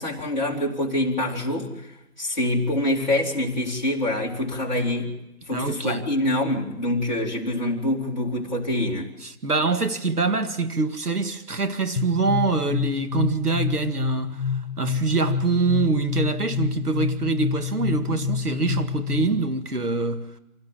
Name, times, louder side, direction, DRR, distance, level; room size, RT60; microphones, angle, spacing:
voice 1, 0.0-1.7 2.2-5.1 5.5-9.1, left 1 dB, 30° left, 2.6 m, -25 dB
voice 2, 5.5-6.1 9.2-20.3, right 3 dB, 75° right, 2.0 m, -25 dB
sound 1, 12.0-19.5, left 6 dB, 85° left, 0.9 m, -28 dB
25.5 x 17.0 x 7.4 m
figure-of-eight pair, 175°, 45 cm